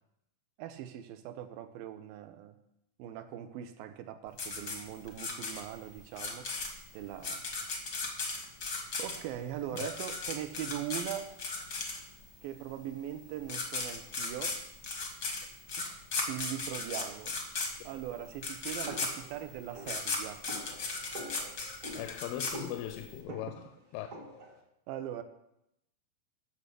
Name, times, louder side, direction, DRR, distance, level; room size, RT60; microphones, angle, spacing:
voice 1, 0.6-2.6 3.0-6.5 6.9-7.4 9.0-11.4 12.4-14.6 15.8-16.0 16.3-17.4 17.8-20.4 23.3-23.4 24.9-25.2, right 11 dB, 80° right, 2.2 m, -40 dB
sound 1, 4.4-12.3 13.1-13.2 13.4-23.1, left 3 dB, 65° left, 0.9 m, -36 dB
sound 2, 18.9-24.6, equal, 45° right, 1.0 m, -47 dB
voice 2, 22.0-24.1, left 12 dB, 85° left, 2.6 m, -39 dB
10.5 x 6.7 x 6.7 m
omnidirectional pair, 4.5 m